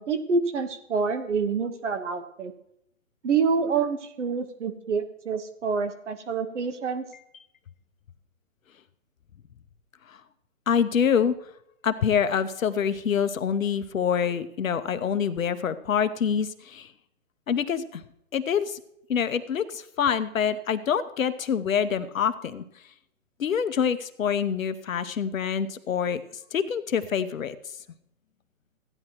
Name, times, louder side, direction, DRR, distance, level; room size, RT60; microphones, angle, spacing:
voice 1, 0.0-2.5 3.2-7.1, right 5 dB, 60° right, 9 dB, 1.3 m, -27 dB
voice 2, 10.7-11.3 11.8-16.9 17.5-18.0 18.3-18.8 19.1-22.6 23.4-26.2 26.5-27.5, left 7 dB, 75° left, 11 dB, 0.9 m, -26 dB
15.5 x 9.9 x 3.0 m, 0.78 s
hypercardioid pair, 155°, 41 cm